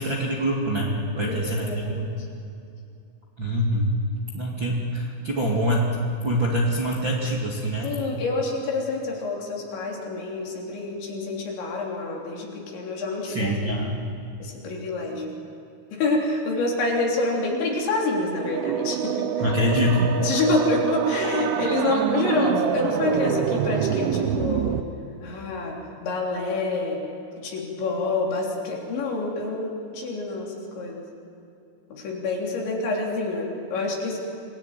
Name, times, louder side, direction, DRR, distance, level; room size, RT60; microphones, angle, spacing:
voice 1, 0.0-2.1 3.4-3.9 4.3-5.9 6.2-7.9 13.2-14.0 19.4-20.1, equal, 35° right, -4 dB, 2.1 m, -25 dB
voice 2, 1.1-2.1 7.8-13.8 14.4-15.3 15.9-19.5 20.2-24.7 25.2-27.0 27.4-31.0 31.9-34.2, left 2 dB, 70° left, -2 dB, 5.7 m, -27 dB
sound 1, 18.3-24.8, right 10 dB, 85° right, 3.4 m, -26 dB
27.0 x 19.0 x 9.3 m, 2.7 s
omnidirectional pair, 5.5 m